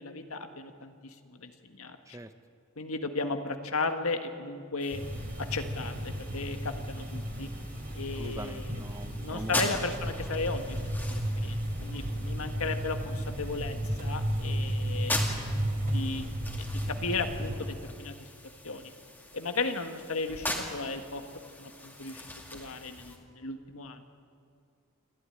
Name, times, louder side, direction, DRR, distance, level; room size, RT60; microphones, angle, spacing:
voice 1, 0.0-2.2 2.8-5.0 5.4-7.5 7.9-8.8 9.2-15.2 15.9-16.3 16.7-18.1 18.6-18.9 19.3-21.2 21.6-24.0, left 3 dB, 80° left, 7 dB, 1.7 m, -35 dB
sound 1, 4.8-23.2, left 1 dB, 10° left, 2.2 m, -41 dB
sound 2, 4.9-17.6, equal, 40° right, 2.8 m, -33 dB
voice 2, 8.2-9.5, right 1 dB, 15° right, 10 dB, 0.7 m, -42 dB
27.5 x 13.0 x 9.9 m, 2.3 s
head